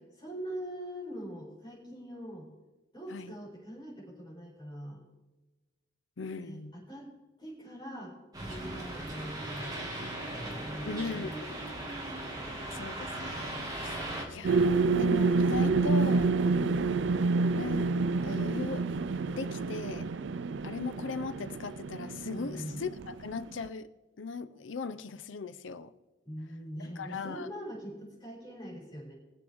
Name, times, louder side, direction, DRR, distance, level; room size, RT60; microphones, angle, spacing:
voice 1, 0.0-2.5 2.9-5.0 6.4-7.1 7.4-9.8 10.8-11.3 22.3-22.8 26.2-29.1, equal, 25° left, 5.0 m, -42 dB
voice 2, 6.2-6.7 10.9-11.3 12.7-16.3 17.5-17.9 18.2-18.9 19.3-20.1 20.6-22.9 23.2-23.9 24.2-25.9 26.8-27.5, left 4 dB, 85° left, 0.6 m, -38 dB
sound 1, 8.3-14.2, right 1 dB, 20° right, 2.2 m, -38 dB
sound 2, 14.4-23.7, right 4 dB, 70° right, 0.4 m, -28 dB
22.5 x 7.8 x 3.6 m
head